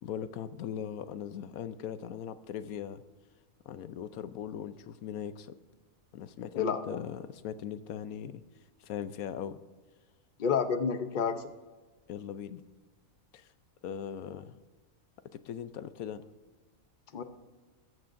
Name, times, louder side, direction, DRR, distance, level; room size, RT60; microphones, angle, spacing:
voice 1, 0.0-3.0 3.7-5.6 6.1-8.4 8.8-9.6 12.1-12.6 13.3-13.5 13.8-14.6 15.3-16.2, left 9 dB, 90° left, 12 dB, 1.1 m, -39 dB
voice 2, 10.4-11.5 17.1-17.2, left 6 dB, 40° left, 9 dB, 0.8 m, -29 dB
22.0 x 14.0 x 2.6 m, 1.3 s
omnidirectional pair, 1.4 m